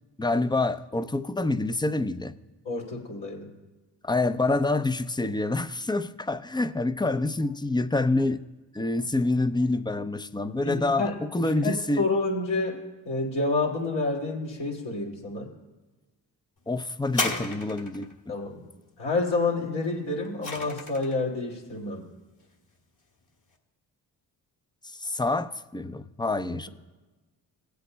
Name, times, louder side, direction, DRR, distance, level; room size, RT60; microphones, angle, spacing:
voice 1, 0.2-2.3 4.0-8.4 8.7-12.1 16.7-18.3 25.0-26.7, left 2 dB, 10° left, 0.5 m, -27 dB
voice 2, 2.6-3.5 10.5-11.1 11.5-12.8 13.0-15.5 18.3-18.6 19.0-22.0, left 3 dB, 75° left, 2.6 m, -29 dB
sound 1, 17.1-18.1 19.8-21.2 22.0-22.1, left 3 dB, 45° left, 1.9 m, -32 dB
18.0 x 8.1 x 2.2 m
supercardioid pair, 50°, 43 cm